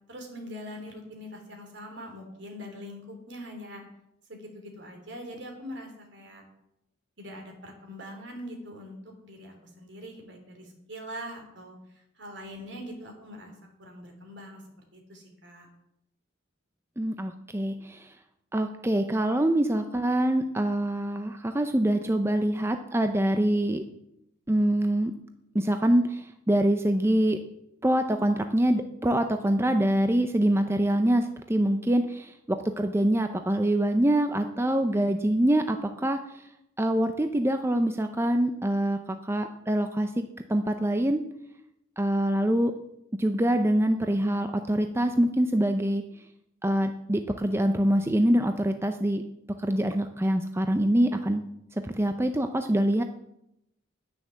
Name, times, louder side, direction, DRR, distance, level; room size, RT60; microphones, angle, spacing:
voice 1, 0.1-3.8 4.3-6.4 7.2-11.8 12.2-13.5 13.8-14.6 14.9-15.7, equal, 60° right, 2 dB, 3.4 m, -42 dB
voice 2, 17.0-18.1 18.5-23.8 24.5-25.1 25.5-27.4 27.8-36.2 36.8-40.2 40.5-41.2 42.0-42.7 43.2-46.0 46.6-49.2 49.6-51.4 51.8-53.0, right 1 dB, 10° right, 7 dB, 0.6 m, -25 dB
10.0 x 9.6 x 7.3 m, 0.82 s
head